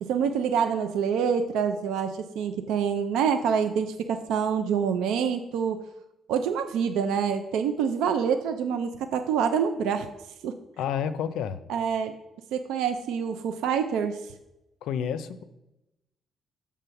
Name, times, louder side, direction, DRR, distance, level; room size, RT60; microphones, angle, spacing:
voice 1, 0.0-5.8 6.3-10.1 10.4-10.5 11.7-12.1 12.5-14.3, right 7 dB, 90° right, 7 dB, 0.4 m, -26 dB
voice 2, 10.8-11.6 14.8-15.4, left 8 dB, 85° left, 12 dB, 0.4 m, -29 dB
6.9 x 3.5 x 5.7 m, 0.94 s
cardioid pair, 90°, 0 cm